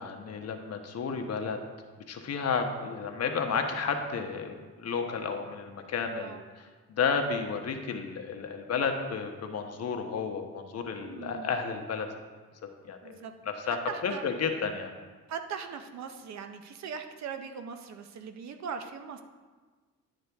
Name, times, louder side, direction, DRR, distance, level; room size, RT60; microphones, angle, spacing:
voice 1, 0.0-1.6 2.1-6.4 6.9-12.1 12.8-13.2 13.7-13.8 14.0-14.9, left 5 dB, 55° left, 4 dB, 1.1 m, -32 dB
voice 2, 11.0-11.6 13.0-13.3 13.6-14.3 15.3-19.2, right 6 dB, 65° right, 7 dB, 0.8 m, -40 dB
11.0 x 6.4 x 3.5 m, 1.4 s
cardioid pair, 90°, 30 cm